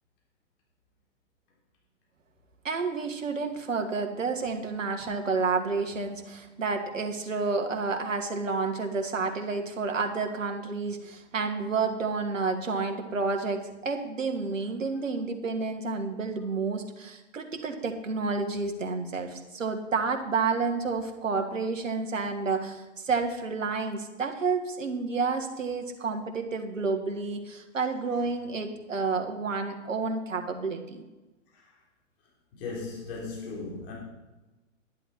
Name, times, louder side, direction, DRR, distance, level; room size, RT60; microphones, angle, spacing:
voice 1, 2.6-31.0, right 4 dB, 85° right, 4 dB, 1.8 m, -30 dB
voice 2, 32.5-33.9, left 3 dB, 45° left, -3 dB, 4.0 m, -37 dB
11.0 x 11.0 x 4.6 m, 1.1 s
hypercardioid pair, 115°, 37 cm